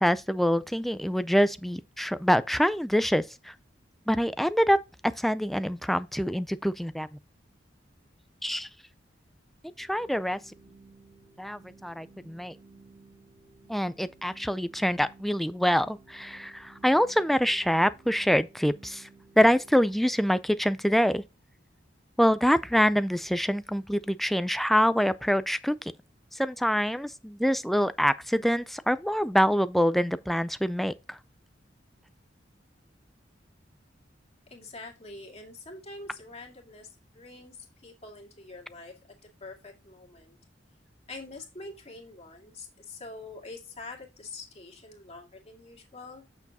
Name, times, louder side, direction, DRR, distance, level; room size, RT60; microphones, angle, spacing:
voice 1, 0.0-3.5 4.1-4.8 5.2-7.1 8.4-8.7 9.8-10.4 11.4-12.5 13.7-19.1 19.4-21.2 22.2-25.9 26.3-31.2, equal, ahead, 0.3 m, -25 dB
Organ, 9.8-20.5, right 3 dB, 60° right, 1.9 m, -56 dB
voice 2, 34.5-38.9 39.4-40.4 41.1-46.3, left 3 dB, 35° left, 2.2 m, -45 dB
8.2 x 6.9 x 2.8 m
head